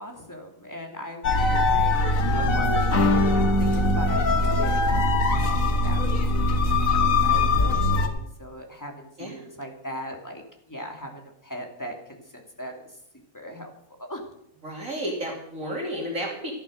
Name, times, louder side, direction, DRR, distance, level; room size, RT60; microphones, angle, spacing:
voice 1, 0.0-2.3 3.3-5.0 5.3-10.4 10.7-12.7 13.3-13.7 14.0-14.3, equal, 10° left, 1 dB, 2.8 m, -39 dB
sound 1, 1.2-8.1, left 2 dB, 60° left, 1.9 m, -21 dB
voice 2, 14.6-16.5, equal, 60° right, -1 dB, 3.2 m, -32 dB
14.0 x 11.0 x 6.6 m, 0.74 s
omnidirectional pair, 1.6 m